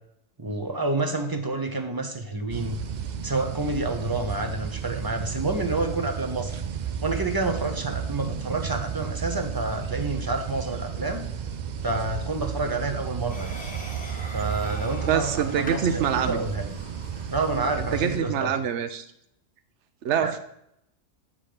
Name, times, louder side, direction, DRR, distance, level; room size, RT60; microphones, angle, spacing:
voice 1, 0.4-2.8 3.2-6.6 7.0-11.2 11.8-13.6 14.3-16.7 17.3-18.5 20.2-20.3, right 2 dB, 20° right, 5 dB, 0.6 m, -29 dB
sound 1, 2.5-18.2, right 8 dB, 85° right, 0.4 m, -33 dB
sound 2, 13.3-17.6, equal, 5° left, 1.3 m, -42 dB
voice 2, 15.1-16.4 17.9-19.1 20.0-20.4, right 8 dB, 65° right, 10 dB, 1.0 m, -25 dB
8.9 x 3.8 x 6.6 m, 0.77 s
omnidirectional pair, 1.4 m